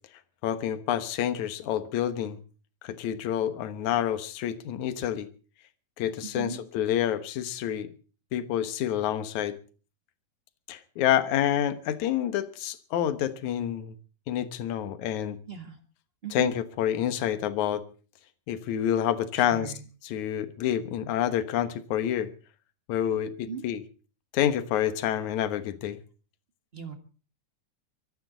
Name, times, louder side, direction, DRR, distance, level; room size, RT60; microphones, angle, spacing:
voice 1, 0.4-2.4 2.8-5.3 6.0-7.9 8.3-9.6 10.7-13.9 14.3-15.4 16.3-17.8 18.5-19.7 20.0-22.3 22.9-23.8 24.3-26.0, left 10 dB, 65° left, 12 dB, 2.5 m, -28 dB
voice 2, 6.2-6.6 15.5-15.8 16.2-16.5 19.3-19.8 23.4-23.6 26.7-26.9, right 7 dB, 30° right, 6 dB, 1.2 m, -38 dB
23.0 x 14.5 x 3.9 m, 0.37 s
omnidirectional pair, 3.8 m